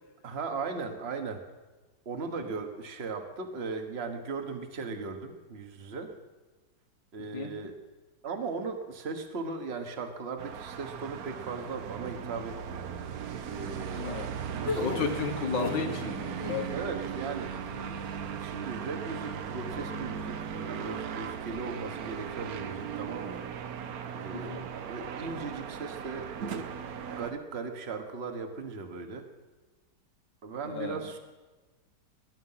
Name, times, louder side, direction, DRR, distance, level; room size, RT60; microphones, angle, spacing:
voice 1, 0.2-1.4 2.0-6.1 7.1-7.8 8.2-14.1 14.5-15.1 16.7-17.5 17.9-23.4 24.1-24.5 24.9-26.7 27.0-29.3 30.4-31.2, right 4 dB, 40° right, 7 dB, 1.4 m, -38 dB
sound 1, 10.4-27.3, right 7 dB, 65° right, 1.2 m, -38 dB
voice 2, 14.0-14.3 14.8-16.7 24.3-24.7 30.6-31.1, left 5 dB, 90° left, 6 dB, 1.9 m, -33 dB
sound 2, 14.7-16.0 16.3-16.8, left 4 dB, 40° left, 1.3 m, -34 dB
19.5 x 10.5 x 5.7 m, 1.3 s
omnidirectional pair, 1.9 m